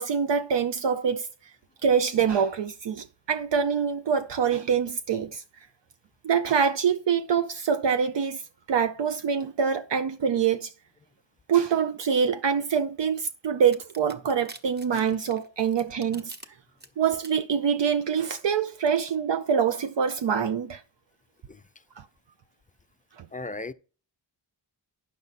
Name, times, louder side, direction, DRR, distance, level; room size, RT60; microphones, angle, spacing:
voice 1, 0.0-1.5 1.8-5.4 6.2-8.4 8.7-10.7 11.5-16.3 17.0-20.8 22.0-22.1 23.2-23.3, right 7 dB, 75° right, 0.6 m, -25 dB
sound 1, 13.7-16.5 16.8-17.3, right 2 dB, 25° right, 1.0 m, -45 dB
voice 2, 21.5-21.8 23.3-23.7, left 3 dB, 20° left, 0.4 m, -37 dB
9.1 x 6.2 x 4.1 m
wide cardioid pair, 75°, 43 cm